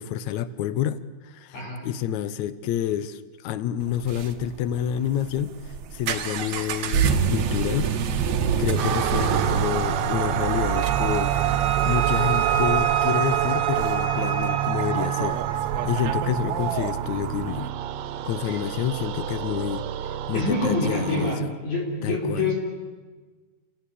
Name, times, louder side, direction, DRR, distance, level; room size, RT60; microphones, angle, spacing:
voice 1, 0.0-7.9 8.6-11.4 11.9-17.7 18.2-19.9 20.3-21.5 22.0-22.5, left 10 dB, 75° left, 14 dB, 1.7 m, -28 dB
sound 1, 3.8-17.7, right 7 dB, 60° right, 2.1 m, -28 dB
sound 2, 8.8-21.3, right 11 dB, 80° right, 2.7 m, -27 dB
Wind instrument woodwind instrument, 10.7-14.8, right 10 dB, 40° right, 1.7 m, -28 dB
voice 2, 20.3-22.6, left 2 dB, 55° left, -2 dB, 5.3 m, -26 dB
29.5 x 17.5 x 8.5 m, 1.4 s
omnidirectional pair, 4.4 m